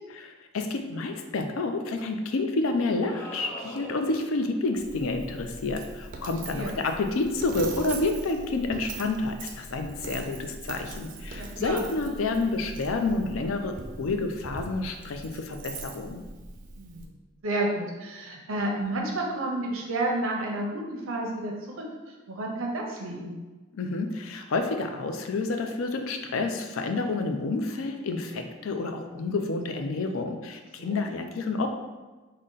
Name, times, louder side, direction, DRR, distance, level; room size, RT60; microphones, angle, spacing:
voice 1, 0.5-16.2 23.7-31.7, left 3 dB, 85° left, 5 dB, 0.4 m, -29 dB
sound 1, 3.0-4.4, equal, 10° left, 0.5 m, -41 dB
Coin (dropping), 4.8-17.1, right 3 dB, 40° right, 0.4 m, -41 dB
voice 2, 11.3-11.9 16.7-17.1 17.4-23.4 30.8-31.1, right 1 dB, 90° right, -1 dB, 0.6 m, -31 dB
3.8 x 2.1 x 3.8 m, 1.2 s
head